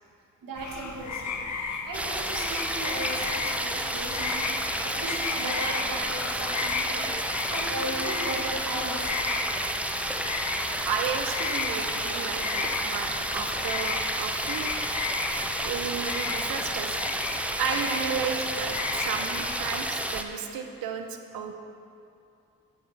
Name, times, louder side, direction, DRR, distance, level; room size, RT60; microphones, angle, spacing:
voice 1, 0.4-1.4 1.8-4.5 4.8-7.1 7.5-9.3, right 2 dB, 70° right, 0 dB, 1.4 m, -36 dB
sound 1, 0.6-19.8, left 4 dB, 55° left, 0.9 m, -34 dB
sound 2, 1.9-20.2, right 1 dB, 5° right, 0.5 m, -31 dB
voice 2, 10.9-14.7 15.5-17.3 17.6-21.5, right 6 dB, 90° right, 5 dB, 0.7 m, -33 dB
9.1 x 8.0 x 3.3 m, 2.5 s
supercardioid pair, 45°, 34 cm